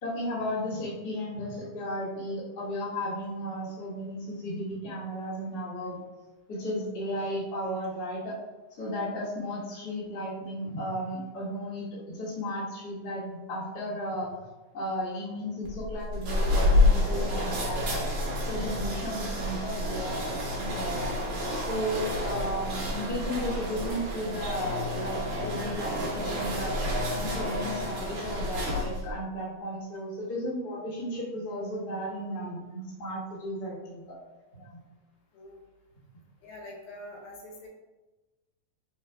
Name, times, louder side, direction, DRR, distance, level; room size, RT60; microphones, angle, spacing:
voice 1, 0.0-6.0 6.5-8.4 8.7-14.3 14.7-18.0 18.5-21.1 21.5-26.7 27.1-34.1 34.5-34.8, equal, 40° left, -8 dB, 1.5 m, -34 dB
sound 1, 15.6-29.1, left 1 dB, 75° right, 1.2 m, -29 dB
voice 2, 36.4-37.7, left 1 dB, 85° left, -1 dB, 2.2 m, -44 dB
4.1 x 3.3 x 2.3 m, 1.1 s
omnidirectional pair, 3.4 m